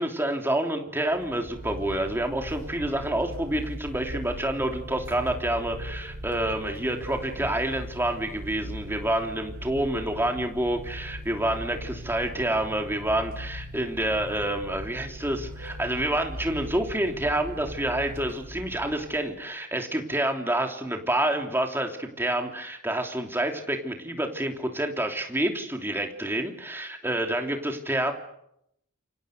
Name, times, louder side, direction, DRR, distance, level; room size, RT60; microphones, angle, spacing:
voice 1, 0.0-28.1, right 1 dB, 10° right, 3 dB, 3.1 m, -28 dB
sound 1, 1.1-19.3, equal, 65° right, 5.3 m, -39 dB
28.5 x 25.5 x 6.6 m, 0.79 s
head